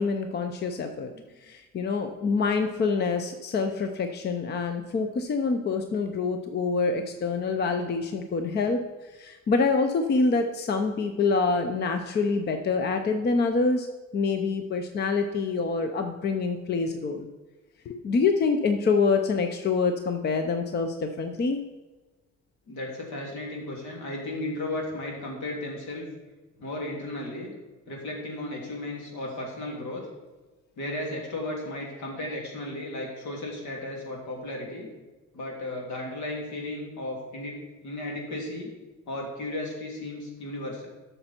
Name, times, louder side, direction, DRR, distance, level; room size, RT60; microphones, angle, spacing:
voice 1, 0.0-1.1 1.4-8.8 9.1-13.9 14.1-17.3 17.9-21.6, left 4 dB, 35° left, 6 dB, 0.6 m, -26 dB
voice 2, 22.7-26.0 26.6-27.5 27.9-30.0 30.8-34.9 35.3-38.7 39.1-40.9, left 1 dB, 70° left, -1 dB, 3.1 m, -35 dB
12.0 x 6.7 x 4.4 m, 1.2 s
cardioid pair, 155°, 30 cm